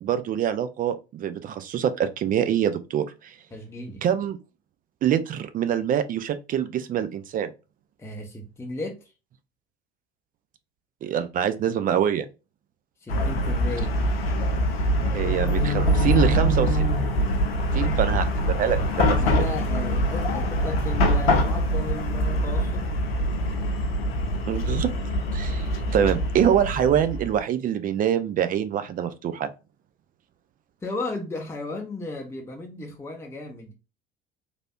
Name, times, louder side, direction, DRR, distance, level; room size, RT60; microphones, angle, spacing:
voice 1, 0.0-3.3 4.0-4.4 5.0-7.5 11.0-12.3 15.1-16.9 17.7-19.5 24.5-24.9 25.3-25.7 25.9-29.5, right 9 dB, 30° right, 0.4 m, -25 dB
voice 2, 3.5-4.0 8.0-9.1 13.0-13.9 19.2-22.9 30.8-33.7, left 2 dB, 10° left, 0.7 m, -35 dB
Chatter / Car passing by / Traffic noise roadway noise, 13.1-27.4, equal, 80° left, 0.7 m, -24 dB
3.3 x 2.5 x 2.2 m
figure-of-eight pair, 70°, 30 cm